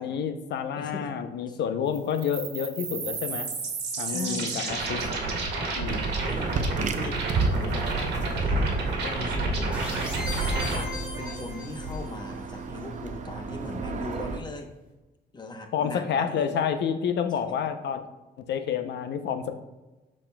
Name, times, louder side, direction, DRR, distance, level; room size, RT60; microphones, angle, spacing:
voice 1, 0.0-3.5 4.0-5.0 5.7-6.1 15.7-18.0 18.4-19.5, left 7 dB, 75° left, 8 dB, 0.6 m, -29 dB
voice 2, 0.8-1.1 1.5-1.6 4.0-4.7 6.3-7.2 7.5-14.7 15.3-16.6 17.3-17.5, left 2 dB, 25° left, 4 dB, 0.8 m, -40 dB
sound 1, 1.9-10.8, right 3 dB, 70° right, 1.5 m, -31 dB
sound 2, 5.9-14.4, right 3 dB, 45° right, 0.6 m, -31 dB
sound 3, 9.7-12.1, left 2 dB, 5° right, 2.2 m, -37 dB
12.0 x 4.3 x 2.2 m, 1.1 s
cardioid pair, 135°, 18 cm